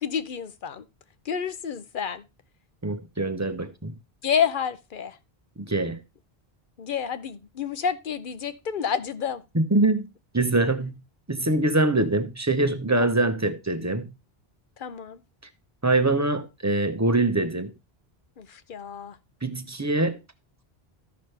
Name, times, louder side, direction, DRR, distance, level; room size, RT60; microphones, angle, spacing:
voice 1, 0.0-0.8 1.2-2.2 4.2-5.2 6.8-9.4 13.0-13.1 14.8-15.2 18.4-19.2, left 7 dB, 60° left, 0.9 m, -29 dB
voice 2, 2.8-3.9 5.6-6.0 9.5-10.1 10.3-10.9 11.3-14.1 15.8-17.7 19.4-20.2, right 2 dB, 20° right, 0.8 m, -24 dB
13.5 x 6.2 x 3.3 m
omnidirectional pair, 1.0 m